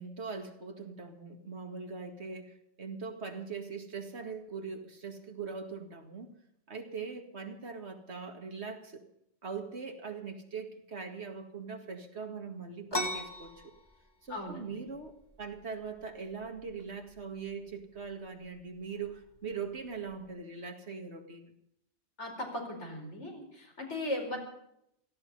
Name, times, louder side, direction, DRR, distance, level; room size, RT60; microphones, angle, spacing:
voice 1, 0.0-6.3 6.7-9.0 9.4-13.7 14.2-21.5, right 5 dB, 70° right, 5 dB, 2.4 m, -41 dB
sound 1, 12.9-20.3, left 1 dB, 20° left, 1.7 m, -42 dB
voice 2, 14.3-14.6 22.2-24.4, left 1 dB, 85° left, 1 dB, 5.0 m, -37 dB
17.0 x 15.0 x 5.5 m, 0.76 s
omnidirectional pair, 1.2 m